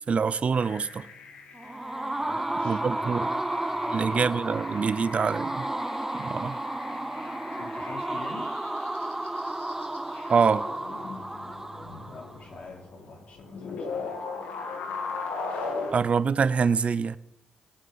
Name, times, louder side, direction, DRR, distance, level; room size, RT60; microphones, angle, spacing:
voice 1, 0.1-1.1 2.6-3.3 3.9-5.7 6.2-6.6 10.3-10.7 15.9-17.2, right 5 dB, 50° right, 0.7 m, -25 dB
sound 1, 0.6-15.9, left 4 dB, 80° left, 1.6 m, -39 dB
sound 2, 1.5-12.4, right 1 dB, 15° right, 0.5 m, -32 dB
voice 2, 2.3-4.6 4.9-5.1 7.6-8.5 12.1-14.1, left 3 dB, 60° left, 3.7 m, -45 dB
20.5 x 9.1 x 4.3 m
hypercardioid pair, 45°, 3 cm